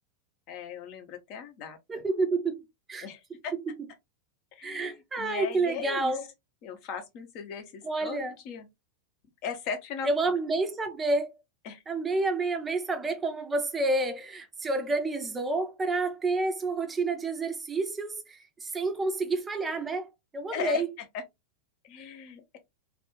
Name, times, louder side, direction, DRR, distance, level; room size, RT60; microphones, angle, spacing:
voice 1, 0.5-2.0 3.0-3.5 4.5-6.2 6.6-8.7 9.4-10.4 11.6-11.8 20.5-21.2 21.8-22.6, left 6 dB, 40° left, 0.7 m, -38 dB
voice 2, 1.9-3.1 4.6-6.2 7.8-8.3 10.0-11.4 11.9-20.1 20.3-20.9, right 3 dB, 15° right, 0.5 m, -29 dB
2.4 x 2.2 x 2.9 m
figure-of-eight pair, 90°, 0 cm